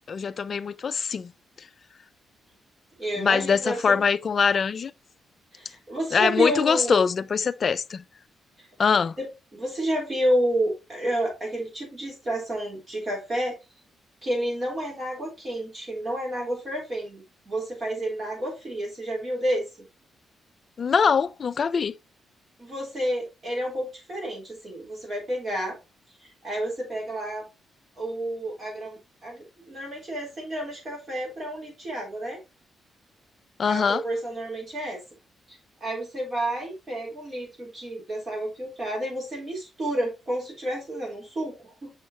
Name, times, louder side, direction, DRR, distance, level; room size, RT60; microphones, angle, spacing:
voice 1, 0.1-1.3 3.2-4.9 6.1-8.0 8.8-9.1 20.8-21.9 33.6-34.0, left 6 dB, 40° left, 0.3 m, -23 dB
voice 2, 3.0-4.0 5.5-7.0 8.6-8.7 9.2-13.6 14.2-19.6 22.6-25.8 26.4-27.4 28.0-32.4 33.6-35.0 35.8-41.9, right 1 dB, 30° right, 3.7 m, -30 dB
6.4 x 5.6 x 2.9 m
cardioid pair, 140°, 0 cm